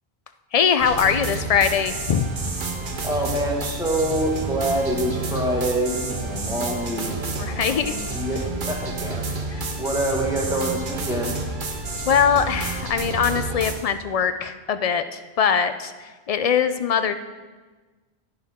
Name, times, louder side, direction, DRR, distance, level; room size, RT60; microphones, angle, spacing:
voice 1, 0.5-2.3 7.4-8.2 9.5-9.7 12.1-15.9 16.3-17.1, left 7 dB, 50° left, 10 dB, 0.4 m, -22 dB
sound 1, 0.8-13.7, right 3 dB, 55° right, 1.1 m, -29 dB
voice 2, 3.0-9.2 9.8-11.4, right 1 dB, 5° right, -2 dB, 1.6 m, -26 dB
10.5 x 9.3 x 3.6 m, 1.3 s
omnidirectional pair, 1.1 m